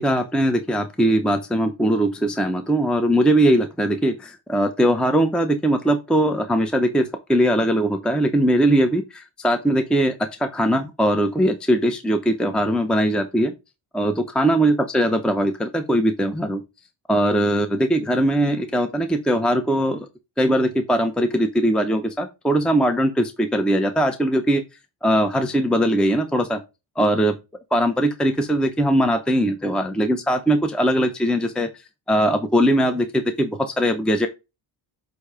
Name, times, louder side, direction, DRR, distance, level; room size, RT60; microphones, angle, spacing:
voice 1, 0.0-10.1 10.4-13.5 13.9-16.6 17.1-20.1 20.4-24.6 25.0-26.6 27.0-27.3 27.7-31.7 32.1-34.3, right 1 dB, ahead, 0.7 m, -20 dB
8.2 x 2.8 x 4.8 m
cardioid pair, 110°, 48 cm